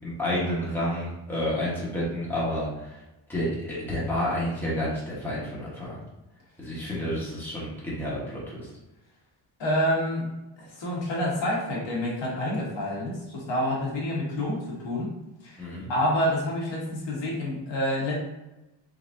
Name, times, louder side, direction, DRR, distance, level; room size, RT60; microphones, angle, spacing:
voice 1, 0.0-3.0 3.3-6.0 6.6-8.7 15.6-15.9, left 1 dB, 5° left, -8 dB, 1.3 m, -30 dB
voice 2, 9.6-10.3 10.6-15.1 15.4-15.6 15.9-18.2, equal, 70° left, -4 dB, 1.5 m, -28 dB
4.0 x 4.0 x 2.7 m, 0.99 s
wide cardioid pair, 175°, 45 cm